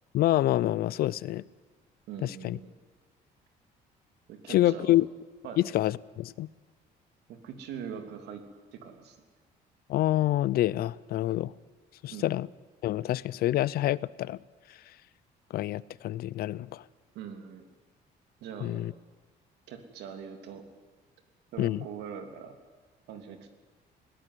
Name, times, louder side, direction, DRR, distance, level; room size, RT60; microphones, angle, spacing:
voice 1, 0.1-1.4 2.2-2.6 4.5-5.1 5.6-6.5 9.9-11.5 12.0-12.5 12.8-14.4 15.5-16.8 18.6-18.9 21.6-21.8, left 14 dB, 65° left, 22 dB, 0.6 m, -27 dB
voice 2, 2.1-2.7 4.3-4.9 5.4-5.7 7.3-8.4 8.7-9.2 12.1-12.3 17.1-17.7 18.4-18.9 19.7-20.6 21.5-22.5 23.1-23.5, right 7 dB, 80° right, 6 dB, 2.9 m, -42 dB
20.5 x 17.0 x 9.7 m, 1.4 s
cardioid pair, 110°, 17 cm